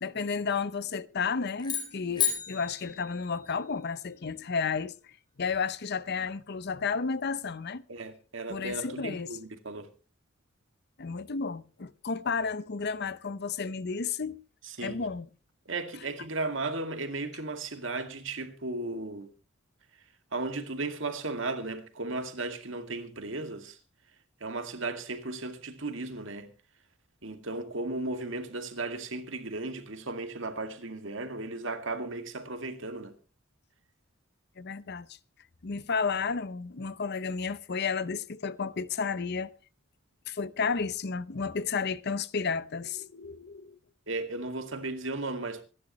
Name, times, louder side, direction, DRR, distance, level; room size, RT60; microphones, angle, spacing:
voice 1, 0.0-5.1 5.4-7.8 8.5-9.4 11.0-14.4 14.8-15.3 34.6-35.2 35.6-39.5 40.3-43.8, left 5 dB, 55° left, 0.7 m, -32 dB
sound 1, 1.6-3.9, left 8 dB, 20° left, 4.3 m, -33 dB
voice 2, 7.9-9.9 14.6-15.0 15.7-19.3 20.3-23.8 24.4-26.5 27.2-33.1 44.1-45.6, right 2 dB, 65° right, 2.1 m, -35 dB
26.0 x 11.0 x 3.1 m
head